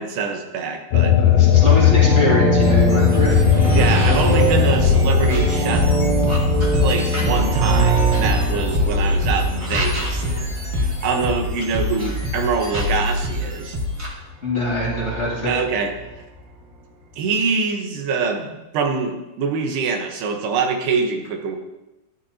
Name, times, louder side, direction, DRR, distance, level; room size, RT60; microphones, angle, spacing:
voice 1, 0.0-1.2 3.7-5.9 6.7-13.8 15.5-15.9 17.2-21.6, right 5 dB, 85° right, 4 dB, 3.2 m, -24 dB
sound 1, 0.9-11.8 12.2-13.6, left 9 dB, 75° left, 2.1 m, -20 dB
voice 2, 1.2-3.3 14.4-15.6, left 1 dB, 30° left, -6 dB, 1.4 m, -24 dB
sound 2, 1.6-11.5 14.6-16.4, right 4 dB, 70° right, 2.8 m, -24 dB
sound 3, 2.6-14.1, left 1 dB, 35° right, 1.1 m, -24 dB
13.0 x 11.0 x 2.8 m, 1.0 s
omnidirectional pair, 4.5 m